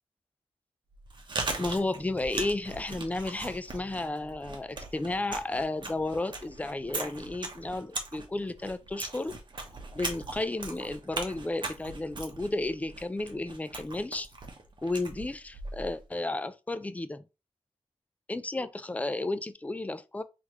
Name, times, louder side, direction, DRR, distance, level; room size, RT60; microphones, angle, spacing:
Chewing mastication, 0.9-16.0, right 3 dB, 45° right, 1.0 m, -39 dB
voice 1, 1.6-9.4 9.9-14.3 14.8-17.2 18.3-20.2, left 2 dB, 15° left, 0.4 m, -33 dB
3.8 x 3.1 x 3.0 m
wide cardioid pair, 95°, 11 cm